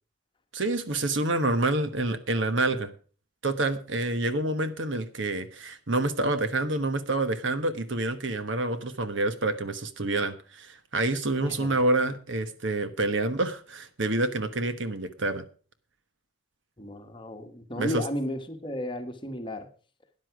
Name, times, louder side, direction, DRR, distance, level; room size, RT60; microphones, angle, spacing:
voice 1, 0.5-2.9 3.4-15.4 17.8-18.0, right 2 dB, 65° right, 10 dB, 1.2 m, -27 dB
voice 2, 11.4-11.8 16.8-19.7, equal, 25° left, 6 dB, 1.3 m, -34 dB
13.0 x 9.9 x 4.8 m, 0.39 s
head